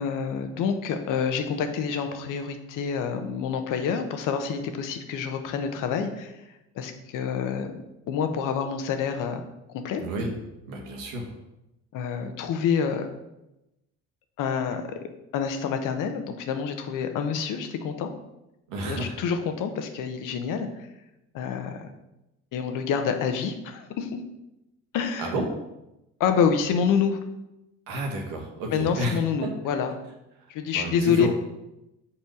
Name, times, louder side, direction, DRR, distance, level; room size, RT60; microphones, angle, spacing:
voice 1, 0.0-6.3 6.7-9.4 9.8-10.0 11.9-13.1 14.4-14.8 15.3-18.1 18.8-20.7 21.3-21.9 22.5-24.2 24.9-25.3 26.2-27.2 28.7-29.9 30.5-31.3, left 6 dB, 65° left, 6 dB, 1.1 m, -27 dB
voice 2, 10.0-10.3 10.7-11.3 18.7-19.1 25.2-25.5 27.9-29.5 30.4-30.5 30.7-31.3, right 1 dB, 80° right, 1 dB, 1.6 m, -31 dB
6.0 x 4.4 x 6.4 m, 0.92 s
supercardioid pair, 70°, 33 cm